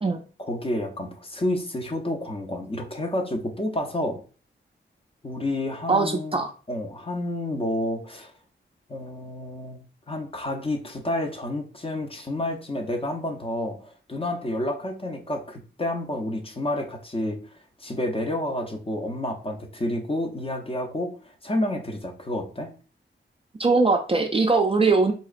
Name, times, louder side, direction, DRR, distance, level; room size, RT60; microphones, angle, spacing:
voice 1, 0.4-4.2 5.2-8.3 8.9-9.8 10.1-21.1 21.4-22.7, left 1 dB, 25° left, 3 dB, 0.6 m, -30 dB
voice 2, 5.9-6.5 23.6-25.1, right 3 dB, 25° right, 3 dB, 0.3 m, -21 dB
4.2 x 2.8 x 2.4 m, 0.37 s
wide cardioid pair, 140°, 21 cm